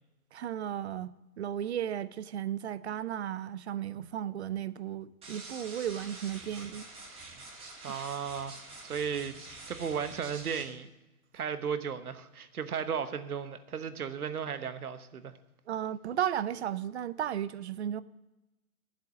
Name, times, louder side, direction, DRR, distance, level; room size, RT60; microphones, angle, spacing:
voice 1, 0.3-6.9 7.9-8.0 15.7-18.0, right 10 dB, 50° right, 0.6 m, -35 dB
sound 1, 5.2-10.6, right 2 dB, 15° right, 2.1 m, -47 dB
voice 2, 7.8-9.3 9.7-10.9 11.3-15.3, right 7 dB, 75° right, 1.1 m, -35 dB
10.5 x 7.7 x 7.1 m
hypercardioid pair, 135°, 44 cm